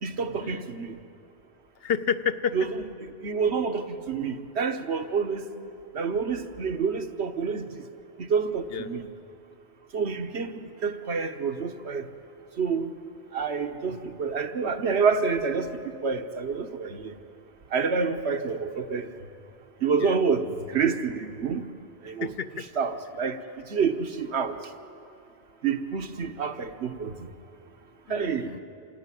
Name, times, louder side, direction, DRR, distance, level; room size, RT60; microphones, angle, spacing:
voice 1, 0.0-0.9 2.5-2.8 3.2-5.5 5.9-7.6 8.2-9.1 9.9-12.1 12.6-12.9 13.3-17.1 17.7-19.1 19.8-21.7 22.0-22.3 22.8-24.6 25.6-27.3 28.1-28.5, right 5 dB, 90° right, 7 dB, 1.4 m, -28 dB
voice 2, 1.8-2.6 4.9-5.0 8.7-8.9 20.0-20.2 22.2-22.7 28.1-28.6, left 7 dB, 65° left, 12 dB, 1.0 m, -30 dB
27.0 x 13.5 x 9.8 m, 2.6 s
omnidirectional pair, 1.1 m